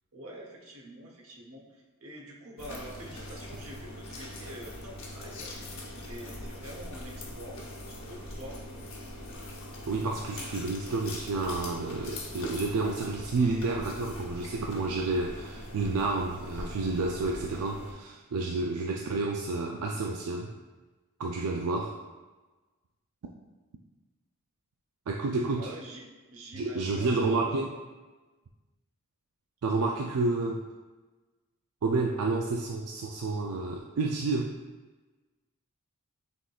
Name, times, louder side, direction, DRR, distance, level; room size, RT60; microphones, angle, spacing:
voice 1, 0.1-5.7 6.0-7.6 7.9-8.6 25.6-26.0 26.3-27.6, equal, 65° right, -2 dB, 1.0 m, -46 dB
sound 1, 2.6-17.9, left 1 dB, 60° left, 0.9 m, -42 dB
voice 2, 9.9-20.5 21.2-22.0 25.1-25.7 26.5-27.7 29.6-30.6 31.8-34.5, right 3 dB, 85° right, 0 dB, 0.4 m, -30 dB
6.1 x 3.6 x 2.4 m, 1.2 s
head